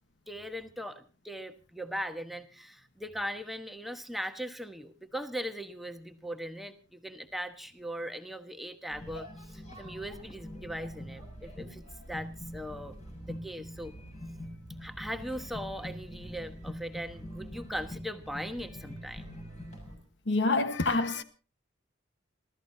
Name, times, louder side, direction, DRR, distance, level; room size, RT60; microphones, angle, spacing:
voice 1, 0.3-12.9 13.3-13.9 14.8-19.3, equal, ahead, 1.1 m, -39 dB
sound 1, 8.9-20.0, equal, 40° left, 6.6 m, -44 dB
voice 2, 20.3-21.2, left 3 dB, 65° left, 1.3 m, -27 dB
29.0 x 13.5 x 2.8 m
head